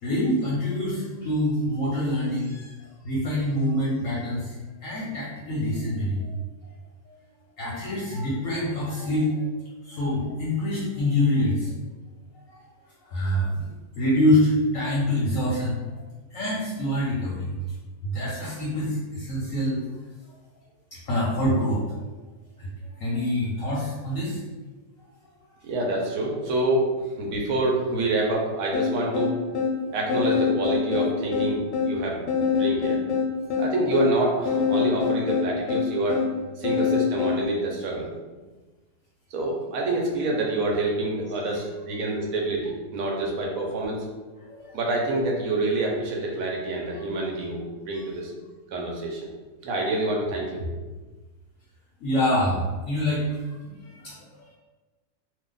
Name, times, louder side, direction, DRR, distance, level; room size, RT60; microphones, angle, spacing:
voice 1, 0.0-2.7 3.0-4.5 4.8-6.3 7.1-7.2 7.6-9.5 9.8-11.7 12.5-12.6 13.1-13.7 14.0-15.9 16.3-17.6 18.0-19.8 20.2-20.3 20.9-22.0 22.6-22.7 23.0-24.4 44.4-44.8 52.0-54.5, left 1 dB, 60° left, -6 dB, 0.9 m, -26 dB
voice 2, 25.6-26.9 27.2-29.4 29.9-32.2 32.5-33.0 33.6-36.2 36.6-38.1 39.3-44.0 44.7-48.3 48.7-49.3 49.6-50.7, right 2 dB, 65° right, -1 dB, 0.9 m, -27 dB
sound 1, 28.7-37.4, left 6 dB, 90° left, 1.2 m, -25 dB
2.7 x 2.3 x 3.8 m, 1.2 s
omnidirectional pair, 1.9 m